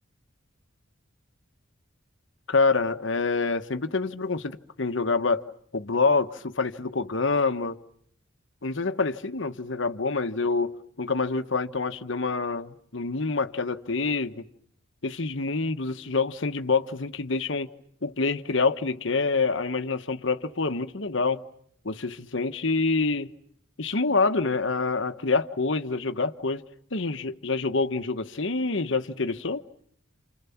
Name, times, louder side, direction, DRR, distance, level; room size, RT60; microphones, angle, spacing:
voice 1, 2.5-5.4 5.7-7.8 8.6-14.5 15.0-17.7 18.0-21.4 21.8-23.3 23.8-26.6 26.9-29.6, left 4 dB, 65° left, 1.2 m, -26 dB
29.0 x 28.5 x 7.2 m
head